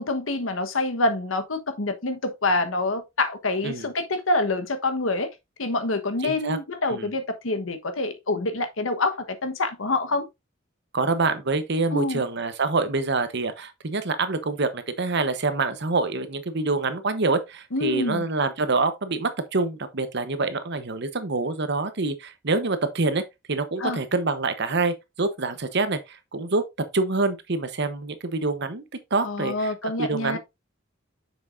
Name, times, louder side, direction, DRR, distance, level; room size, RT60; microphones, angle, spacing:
voice 1, 0.0-5.3 5.6-10.3 11.9-12.2 17.7-18.2 23.8-24.0 29.2-30.4, left 2 dB, 85° left, 1.2 m, -26 dB
voice 2, 6.2-6.6 6.9-7.1 10.9-23.2 23.5-28.8 29.1-30.4, right 3 dB, 60° right, 1.0 m, -26 dB
7.1 x 6.2 x 2.6 m
head